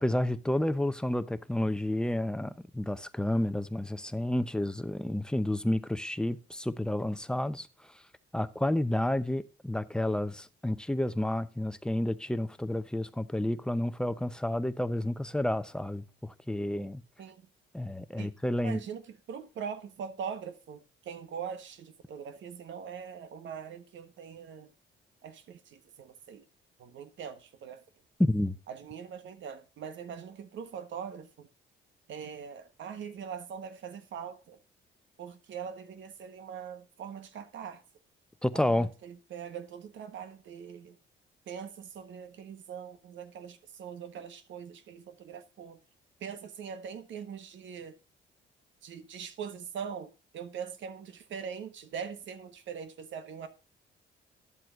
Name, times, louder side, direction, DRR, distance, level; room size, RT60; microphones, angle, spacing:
voice 1, 0.0-7.7 8.3-17.0 17.7-18.8 28.2-28.6 38.4-38.9, left 1 dB, 5° left, 0.7 m, -30 dB
voice 2, 18.6-24.7 25.2-26.4 26.8-27.8 28.7-31.5 32.1-34.6 35.2-37.8 38.5-41.0 41.5-45.8 46.2-47.9 48.8-53.5, right 7 dB, 70° right, 1.3 m, -42 dB
11.0 x 7.6 x 2.5 m
cardioid pair, 90°, 20 cm